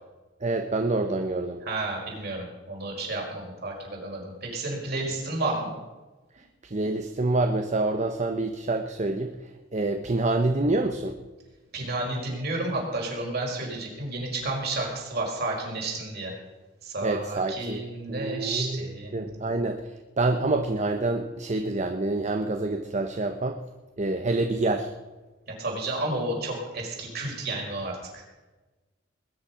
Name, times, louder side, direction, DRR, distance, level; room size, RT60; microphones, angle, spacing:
voice 1, 0.4-1.6 6.6-9.3 9.7-11.2 17.0-17.8 18.1-18.9 19.1-19.8 20.2-23.6 24.0-24.9, right 2 dB, 40° right, 6 dB, 0.9 m, -27 dB
voice 2, 1.6-5.7 11.7-16.3 16.8-19.6 25.5-28.2, right 2 dB, 55° right, -1 dB, 5.0 m, -31 dB
20.5 x 10.0 x 5.8 m, 1.2 s
head